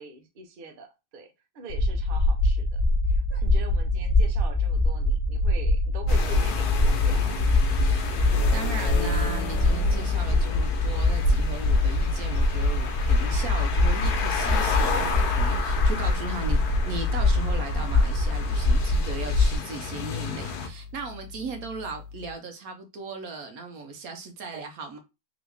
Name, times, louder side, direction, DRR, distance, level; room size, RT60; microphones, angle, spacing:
voice 1, 0.0-2.8 3.1-7.4, right 3 dB, 45° right, 0.8 m, -43 dB
sound 1, 1.7-19.6, left 2 dB, 40° left, 1.0 m, -23 dB
sound 2, 6.1-20.7, left 6 dB, 75° left, 1.3 m, -33 dB
voice 2, 8.5-16.6 16.9-25.0, right 4 dB, 65° right, 1.2 m, -37 dB
sound 3, 10.0-22.3, left 5 dB, 10° left, 1.0 m, -44 dB
3.8 x 2.9 x 3.4 m
omnidirectional pair, 1.7 m